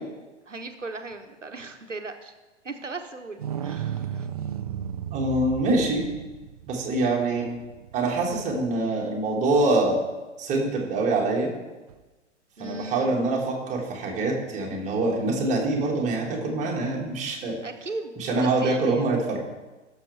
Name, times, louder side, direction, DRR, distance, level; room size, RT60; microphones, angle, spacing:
voice 1, 0.5-2.3 2.6-4.3 12.6-13.1 17.6-19.1, right 3 dB, 85° right, 7 dB, 1.0 m, -37 dB
sound 1, 3.4-8.8 11.9-12.0, right 9 dB, 35° right, 0.4 m, -35 dB
voice 2, 5.1-6.0 6.7-7.5 7.9-10.0 10.4-11.5 12.6-17.5 18.2-19.4, right 2 dB, 20° right, -2 dB, 1.8 m, -25 dB
16.5 x 6.7 x 3.2 m, 1.2 s
figure-of-eight pair, 110°, 36 cm